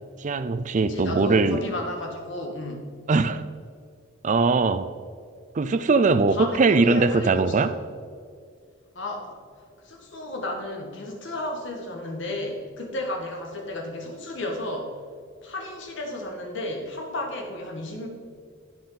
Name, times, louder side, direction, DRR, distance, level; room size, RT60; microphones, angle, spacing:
voice 1, 0.2-1.6 3.1-3.4 4.2-4.9 5.5-7.7, right 3 dB, 40° right, 13 dB, 0.4 m, -21 dB
voice 2, 0.8-3.0 6.1-6.6 6.9-7.7 9.0-9.4 9.8-14.9 15.4-18.1, left 1 dB, 65° left, 1 dB, 2.0 m, -33 dB
11.0 x 10.0 x 4.1 m, 2.2 s
head